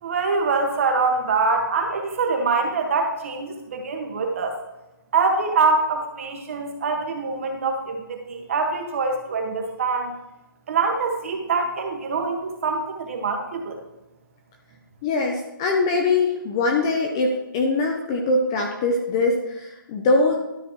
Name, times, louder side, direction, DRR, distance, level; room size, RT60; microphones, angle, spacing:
voice 1, 0.0-4.6 5.1-10.1 10.7-13.8, right 4 dB, 35° right, 3 dB, 1.3 m, -24 dB
voice 2, 15.0-20.4, left 3 dB, 10° left, 1 dB, 0.4 m, -22 dB
12.5 x 5.5 x 2.9 m, 0.96 s
hypercardioid pair, 170°, 12 cm